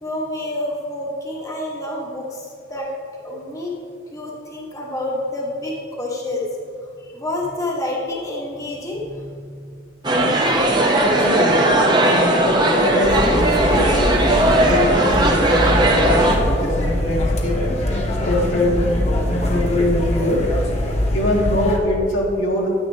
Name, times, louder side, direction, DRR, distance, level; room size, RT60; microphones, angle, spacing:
voice 1, 0.0-2.9 3.2-3.8 4.1-6.5 7.1-9.8 10.4-10.6, left 1 dB, 15° left, -3 dB, 1.2 m, -28 dB
sound 1, 10.0-16.4, right 1 dB, 20° right, 0.7 m, -17 dB
voice 2, 10.8-16.2 16.6-17.6 18.3-20.4 20.8-22.7, left 1 dB, 90° left, -3 dB, 1.8 m, -23 dB
sound 2, 13.0-21.8, left 1 dB, 35° left, 0.9 m, -22 dB
9.5 x 9.4 x 2.7 m, 2.3 s
head